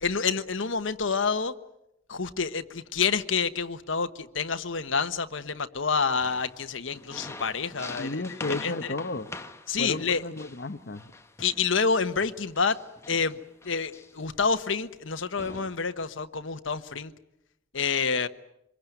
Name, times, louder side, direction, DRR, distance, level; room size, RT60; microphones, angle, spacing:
voice 1, 0.0-1.5 2.1-8.7 9.7-10.2 11.4-12.8 13.1-13.4 13.6-17.1 17.7-18.3, left 5 dB, 75° left, 1.1 m, -28 dB
sound 1, 6.1-11.7 12.2-14.3 15.0-15.1 15.4-15.8, left 2 dB, 15° left, 1.3 m, -44 dB
voice 2, 8.0-9.3 9.8-11.0, left 2 dB, 55° left, 1.0 m, -33 dB
25.5 x 22.0 x 9.2 m
head